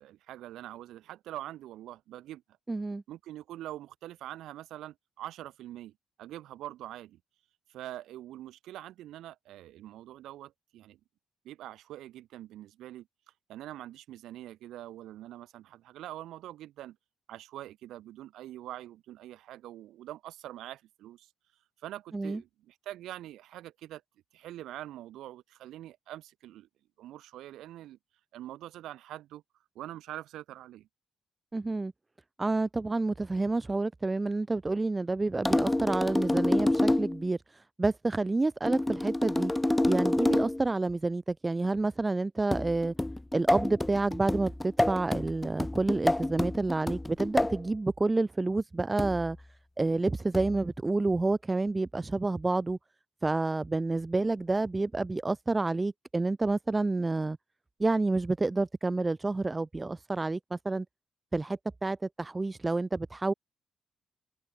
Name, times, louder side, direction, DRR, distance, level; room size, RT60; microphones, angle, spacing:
voice 1, 0.0-2.4 3.1-5.9 6.2-7.2 7.7-11.0 11.4-13.1 13.5-17.0 17.3-21.3 21.8-24.0 24.3-26.7 27.0-28.0 28.3-29.4 29.7-30.9, right 13 dB, 85° right, 1.1 m, -44 dB
voice 2, 2.7-3.0 22.1-22.4 31.5-31.9 32.4-39.5 39.9-42.9 43.3-49.4 49.8-52.8 53.2-57.4 57.8-60.9 61.3-63.3, right 3 dB, 20° right, 0.8 m, -29 dB
sound 1, 35.5-37.2 38.7-40.7 42.5-47.7 49.0-49.3 50.3-50.7, left 1 dB, 10° left, 1.0 m, -28 dB
cardioid pair, 90°, 0 cm